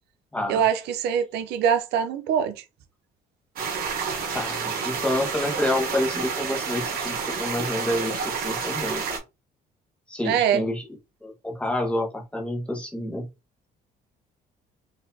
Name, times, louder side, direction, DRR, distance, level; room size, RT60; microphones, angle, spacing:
voice 1, 0.5-2.5 10.3-10.6, right 8 dB, 80° right, 0.5 m, -23 dB
sound 1, 3.6-9.2, right 5 dB, 60° right, 1.1 m, -29 dB
voice 2, 4.3-9.2 10.1-10.8 11.2-13.3, left 1 dB, 5° left, 1.1 m, -28 dB
4.0 x 2.7 x 2.7 m
cardioid pair, 110°, 17 cm